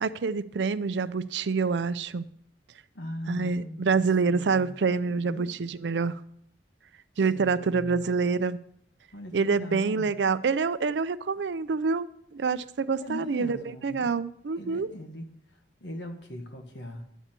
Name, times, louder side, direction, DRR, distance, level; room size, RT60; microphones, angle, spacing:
voice 1, 0.0-2.3 3.3-6.2 7.2-8.6 9.3-14.9, right 4 dB, 85° right, 14 dB, 0.5 m, -27 dB
voice 2, 2.9-4.7 5.1-5.6 7.3-8.1 9.1-10.2 13.0-14.1 14.6-15.3 15.8-17.1, equal, 80° left, 4 dB, 1.5 m, -40 dB
11.0 x 8.2 x 4.4 m, 0.69 s
head